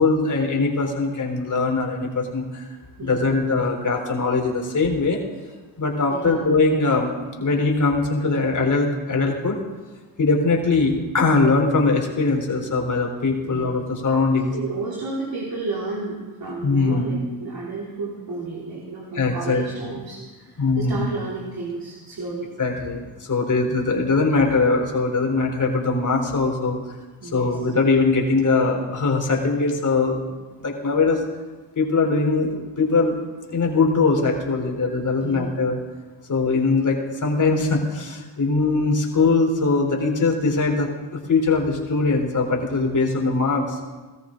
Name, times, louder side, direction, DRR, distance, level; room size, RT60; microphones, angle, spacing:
voice 1, 0.0-2.7 3.0-5.2 5.8-7.1 7.4-9.6 10.2-14.5 16.6-17.2 19.1-20.0 20.6-21.1 22.6-26.8 27.3-30.2 30.6-31.2 31.8-33.1 33.5-35.8 36.3-43.8, left 3 dB, 40° left, 1 dB, 3.5 m, -21 dB
voice 2, 3.0-3.4 6.1-6.4 13.5-13.7 14.5-22.5 27.2-27.6 35.2-35.6, right 3 dB, 45° right, -4 dB, 3.2 m, -32 dB
17.5 x 14.0 x 3.8 m, 1.3 s
supercardioid pair, 60°, 49 cm